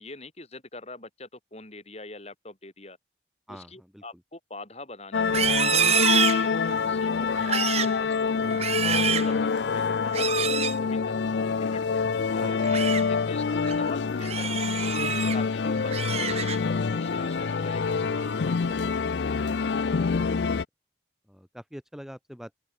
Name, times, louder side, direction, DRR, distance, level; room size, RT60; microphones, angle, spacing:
voice 1, 0.0-3.0 3.5-8.4 8.8-12.6 13.1-14.8 15.3-15.9 16.2-19.2, left 2 dB, 35° left, 5.1 m, -44 dB
voice 2, 3.5-4.0 9.3-9.5 12.4-12.8 15.6-15.9 20.0-20.6 21.3-22.6, equal, ahead, 2.8 m, -45 dB
sound 1, 5.1-20.6, left 5 dB, 65° left, 0.5 m, -26 dB
Livestock farm animals working animals, 5.2-6.9 7.3-8.0 8.4-9.3 10.1-10.8 12.5-13.0 13.5-13.7 14.2-15.4 15.8-16.8 17.2-17.5 17.9-18.4, right 8 dB, 35° right, 1.1 m, -28 dB
head